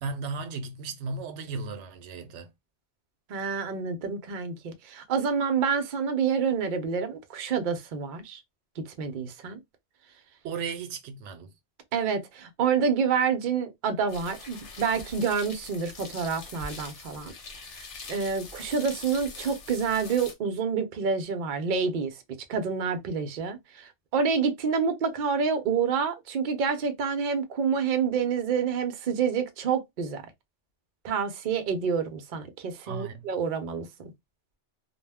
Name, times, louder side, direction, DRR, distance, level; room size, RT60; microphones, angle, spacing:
voice 1, 0.0-2.5 10.4-11.5 32.9-33.3, right 4 dB, 80° right, 0.9 m, -35 dB
voice 2, 3.3-8.4 8.9-9.6 11.9-17.3 17.8-22.1 22.5-30.2 31.0-33.9, right 6 dB, 55° right, 0.6 m, -28 dB
sound 1, 14.1-20.3, left 3 dB, 85° left, 1.1 m, -43 dB
2.3 x 2.1 x 3.4 m
omnidirectional pair, 1.2 m